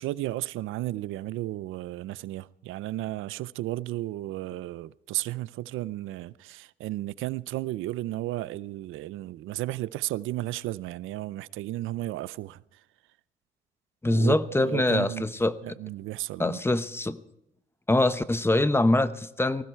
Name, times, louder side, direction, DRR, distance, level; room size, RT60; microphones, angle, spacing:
voice 1, 0.0-12.8 14.1-15.3 15.6-16.6, right 16 dB, 90° right, 0.6 m, -34 dB
voice 2, 14.0-15.5 16.4-17.2 17.9-19.6, left 2 dB, 10° left, 1.0 m, -24 dB
19.5 x 16.0 x 4.6 m
cardioid pair, 90°, 20 cm